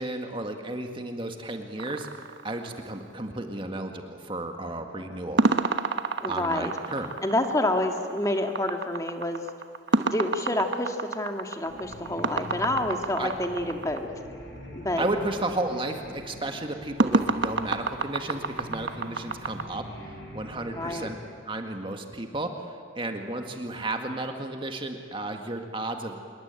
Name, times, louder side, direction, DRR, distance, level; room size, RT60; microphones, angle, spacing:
voice 1, 0.0-2.1 2.4-5.5 6.3-7.1 13.2-13.3 15.0-21.2 21.5-26.2, right 2 dB, 25° right, 4 dB, 1.9 m, -33 dB
sound 1, 1.8-3.2 5.4-14.0 17.0-19.6, right 3 dB, 65° right, 1.2 m, -28 dB
voice 2, 6.2-6.7 7.2-9.4 10.1-14.1 14.7-15.1 20.7-21.1, left 1 dB, 15° left, 4 dB, 2.0 m, -28 dB
sound 2, 11.6-21.1, equal, 70° left, 6.6 m, -43 dB
26.5 x 22.0 x 9.1 m, 2.1 s
head